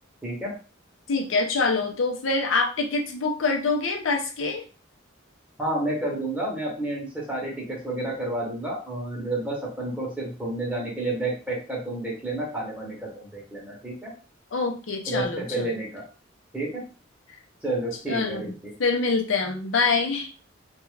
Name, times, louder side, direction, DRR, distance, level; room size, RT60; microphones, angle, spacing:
voice 1, 0.2-0.5 5.6-14.1 15.1-16.0 16.5-16.8 17.6-18.7, right 2 dB, 5° right, -4 dB, 0.8 m, -30 dB
voice 2, 1.1-4.6 14.5-15.7 18.1-18.5 18.8-20.3, left 4 dB, 75° left, 2 dB, 0.6 m, -25 dB
2.4 x 2.3 x 3.1 m, 0.35 s
head